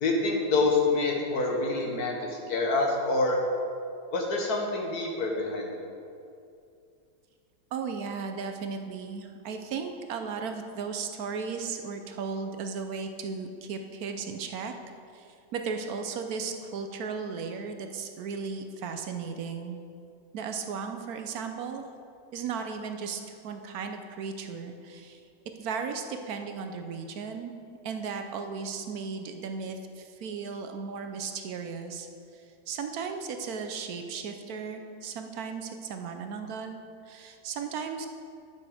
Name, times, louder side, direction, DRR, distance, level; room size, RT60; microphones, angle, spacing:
voice 1, 0.0-3.4 4.1-5.8, left 3 dB, 70° left, 0 dB, 1.8 m, -27 dB
voice 2, 7.7-14.7 15.1-15.3 15.5-19.8 20.3-21.9 22.3-25.2 25.6-27.5 27.8-32.1 32.7-36.8 37.1-38.1, right 5 dB, 70° right, 6 dB, 1.1 m, -35 dB
11.0 x 6.2 x 4.9 m, 2.5 s
omnidirectional pair, 1.7 m